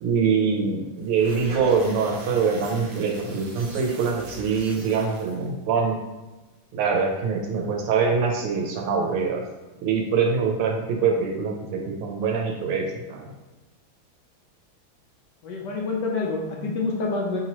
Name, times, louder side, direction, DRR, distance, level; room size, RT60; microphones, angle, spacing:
voice 1, 0.0-6.0 6.7-9.4 9.8-13.3, right 5 dB, 80° right, 1 dB, 1.5 m, -24 dB
sound 1, 1.0-5.5, right 2 dB, 60° right, 1.0 m, -41 dB
voice 2, 15.4-17.4, left 3 dB, 65° left, -2 dB, 1.1 m, -27 dB
5.9 x 2.9 x 2.9 m, 1.1 s
omnidirectional pair, 2.4 m